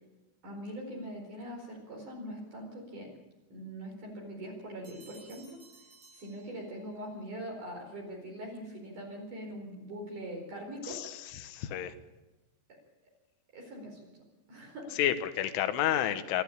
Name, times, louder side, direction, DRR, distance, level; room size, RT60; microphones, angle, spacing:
voice 1, 0.4-3.1 3.5-5.4 6.1-11.4 13.5-14.1 14.5-15.0, equal, 45° right, 0 dB, 5.7 m, -42 dB
Bell, 4.8-7.1, right 3 dB, 65° right, 9.1 m, -58 dB
voice 2, 10.8-11.9 15.0-16.4, left 11 dB, 85° left, 11 dB, 3.7 m, -30 dB
25.5 x 13.0 x 8.7 m, 1.1 s
omnidirectional pair, 5.5 m